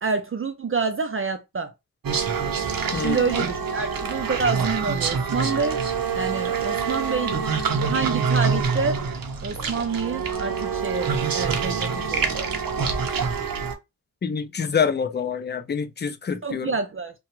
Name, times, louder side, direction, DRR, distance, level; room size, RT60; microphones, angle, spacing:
voice 1, 0.0-1.7 2.9-5.8 6.2-7.4 7.8-9.0 9.4-12.4 16.4-17.1, right 5 dB, 40° right, 0.4 m, -27 dB
sound 1, 2.0-13.7, right 5 dB, 70° right, 0.7 m, -26 dB
voice 2, 2.9-3.4 14.2-16.7, left 6 dB, 30° left, 0.4 m, -26 dB
2.8 x 2.2 x 2.9 m
wide cardioid pair, 90°, 35 cm